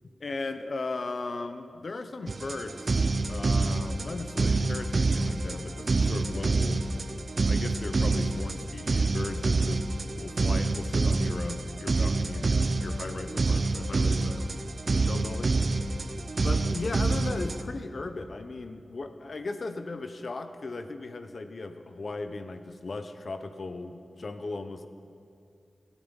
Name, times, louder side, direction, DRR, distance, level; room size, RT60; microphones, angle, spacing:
voice 1, 0.2-3.0 3.3-6.9 7.5-9.8 10.2-14.5 14.9-15.6 16.4-24.9, left 3 dB, 65° left, 9 dB, 0.9 m, -37 dB
sound 1, 2.3-17.6, right 3 dB, 60° right, 0.8 m, -27 dB
24.5 x 9.4 x 5.4 m, 2.4 s
cardioid pair, 55°, 0 cm